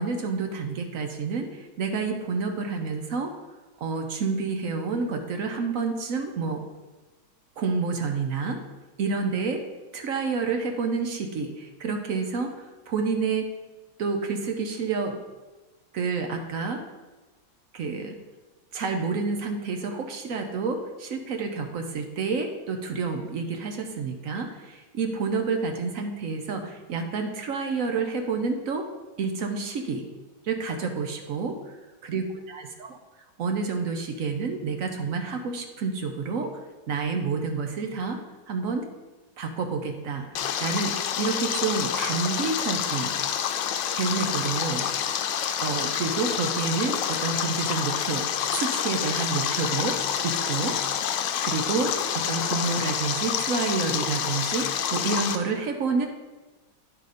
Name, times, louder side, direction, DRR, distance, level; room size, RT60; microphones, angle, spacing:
voice 1, 0.0-3.3 3.8-6.6 7.6-8.6 9.0-9.6 9.9-13.5 14.0-15.1 15.9-16.8 17.7-18.2 18.7-28.9 29.2-30.0 30.4-31.7 32.0-32.9 33.4-36.5 36.9-38.2 38.5-38.8 39.4-40.3 40.6-43.1 43.9-44.8 45.6-48.3 48.5-50.0 50.2-50.8 51.4-51.9 52.3-56.1, right 4 dB, 65° right, 4 dB, 0.8 m, -29 dB
Stream, 40.4-55.4, left 9 dB, 75° left, 1.2 m, -28 dB
10.0 x 4.0 x 5.0 m, 1.2 s
omnidirectional pair, 2.1 m